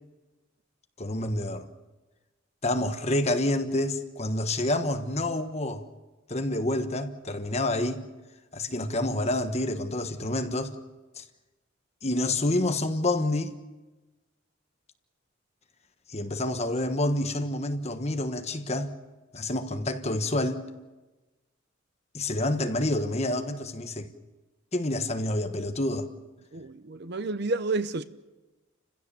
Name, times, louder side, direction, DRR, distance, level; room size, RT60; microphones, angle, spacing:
voice 1, 1.0-1.7 2.6-5.8 6.3-8.1 8.5-10.8 11.2-11.3 12.0-13.5 16.1-18.9 19.3-20.7 22.1-24.1 24.7-26.1, left 1 dB, 30° left, 1.3 m, -28 dB
voice 2, 26.5-28.0, right 3 dB, 55° right, 0.7 m, -30 dB
29.5 x 15.5 x 7.0 m
head